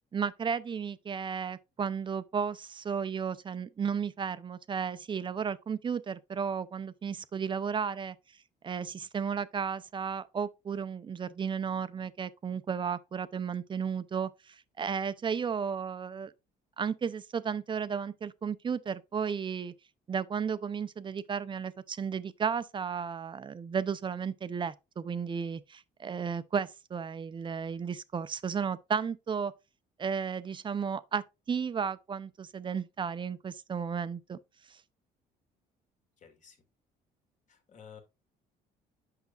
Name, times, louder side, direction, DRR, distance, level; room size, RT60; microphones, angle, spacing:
voice 1, 0.1-8.2 8.6-16.3 16.8-19.7 20.1-29.5 30.0-34.4 34.7-34.8, right 6 dB, 30° right, 0.5 m, -34 dB
voice 2, 36.2-36.6 37.5-38.0, left 7 dB, 45° left, 2.0 m, -53 dB
8.2 x 5.9 x 2.4 m
cardioid pair, 110°, 17 cm